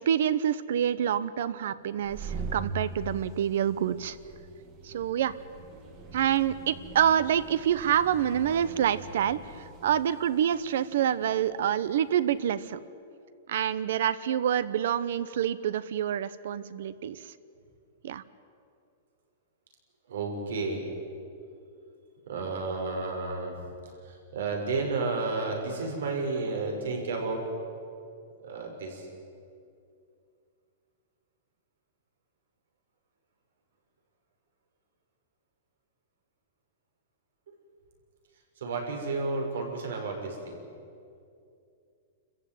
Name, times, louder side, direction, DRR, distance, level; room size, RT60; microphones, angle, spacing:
voice 1, 0.0-4.2 4.8-5.3 6.1-12.8 13.5-17.2 18.0-18.2, right 9 dB, 60° right, 16 dB, 0.9 m, -27 dB
sound 1, 1.9-12.4, right 3 dB, 20° right, 1.8 m, -43 dB
voice 2, 20.1-20.8 22.3-23.7 24.0-27.4 28.4-29.1 38.6-40.6, right 3 dB, 80° right, 2 dB, 6.1 m, -32 dB
28.0 x 15.0 x 9.4 m, 2.5 s
supercardioid pair, 175°, 0 cm